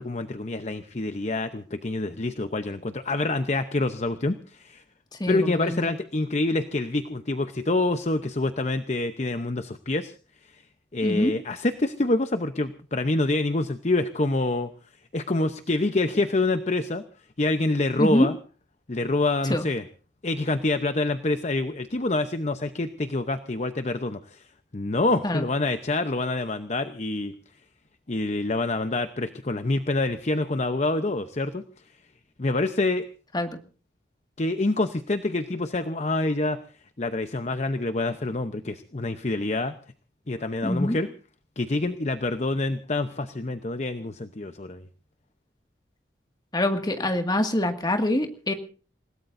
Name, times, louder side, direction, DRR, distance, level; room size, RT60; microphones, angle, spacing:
voice 1, 0.0-4.8 5.3-10.1 10.4-10.6 10.9-14.7 15.1-17.0 17.4-18.4 18.9-19.9 20.2-24.5 24.7-27.3 28.1-31.6 32.4-33.1 34.4-36.6 37.0-39.7 40.3-41.1 41.6-44.8, left 2 dB, 40° left, 9 dB, 0.8 m, -26 dB
voice 2, 5.2-5.9 11.0-11.3 18.0-18.3 19.5-19.7 25.2-25.4 33.3-33.6 40.6-41.0 46.5-48.5, left 1 dB, 25° left, 6 dB, 2.0 m, -25 dB
28.5 x 17.5 x 2.6 m, 0.38 s
head